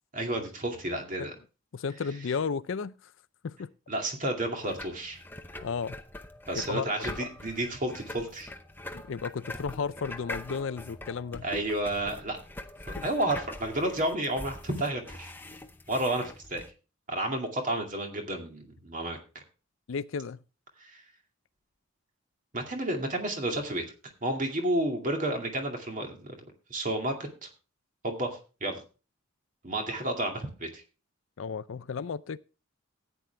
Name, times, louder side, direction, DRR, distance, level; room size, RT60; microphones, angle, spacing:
voice 1, 0.1-1.3 3.9-5.2 6.5-8.5 11.4-12.4 12.9-15.3 15.9-16.6 17.1-19.4 20.8-21.0 22.5-23.8 24.2-26.3 26.7-27.2 27.4-27.5 28.0-28.8 29.6-30.8, right 1 dB, 40° right, 2.3 m, -31 dB
voice 2, 1.7-2.9 3.4-3.7 5.6-6.0 6.6-7.3 8.9-11.4 13.0-13.1 19.9-20.4 31.4-32.4, left 5 dB, 65° left, 0.4 m, -33 dB
sound 1, 4.6-16.7, left 1 dB, 10° left, 0.7 m, -43 dB
14.0 x 9.1 x 3.3 m
head